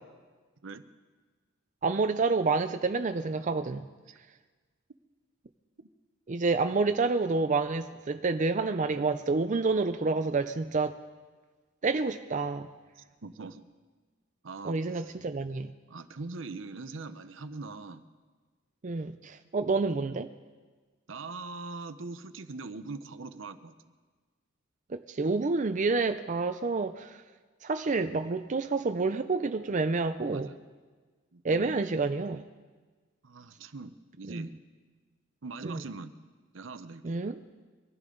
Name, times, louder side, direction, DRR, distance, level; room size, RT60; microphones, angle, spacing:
voice 1, 1.8-3.8 6.3-11.0 11.8-12.7 14.6-15.7 18.8-20.3 24.9-27.2 27.6-30.5 31.4-32.4 34.3-34.5 35.6-35.8 37.0-37.4, right 3 dB, 40° right, 8 dB, 0.5 m, -28 dB
voice 2, 13.0-13.6 14.4-15.1 15.9-18.0 21.1-23.7 30.3-30.6 31.3-31.8 33.2-34.5 35.4-36.1 36.5-37.2, right 3 dB, 65° right, 11 dB, 0.8 m, -42 dB
23.5 x 14.5 x 3.9 m, 1.4 s
head